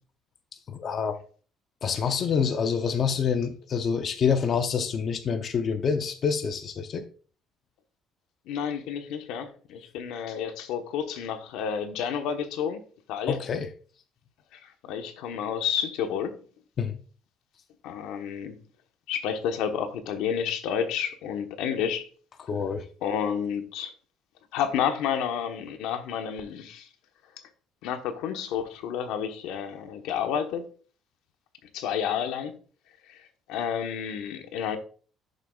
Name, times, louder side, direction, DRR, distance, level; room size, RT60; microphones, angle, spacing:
voice 1, 0.7-1.1 1.8-7.0 13.3-13.7 16.8-17.0 22.5-22.8, left 6 dB, 35° left, 0.6 m, -27 dB
voice 2, 8.5-12.8 13.1-13.4 14.5-16.4 17.8-18.6 19.1-22.0 23.0-23.9 24.5-26.9 27.8-30.6 31.7-32.5 33.1-34.8, left 8 dB, 85° left, 1.2 m, -30 dB
11.5 x 6.7 x 2.4 m
cardioid pair, 165°, 0 cm